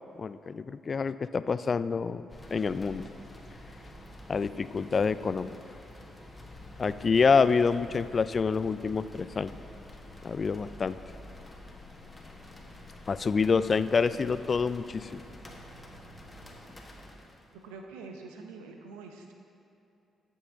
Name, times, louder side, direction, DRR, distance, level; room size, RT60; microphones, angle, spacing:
voice 1, 0.2-2.2 2.5-3.0 4.3-5.6 6.8-9.6 10.2-11.0 13.1-15.2, left 5 dB, 45° left, 14 dB, 0.3 m, -27 dB
sound 1, 2.3-17.6, left 1 dB, 20° left, 1.4 m, -49 dB
sound 2, 6.5-16.9, left 3 dB, 90° left, 1.3 m, -55 dB
voice 2, 17.6-19.3, right 4 dB, 80° right, 3 dB, 0.7 m, -45 dB
14.0 x 5.6 x 3.8 m, 2.8 s
hypercardioid pair, 45°, 0 cm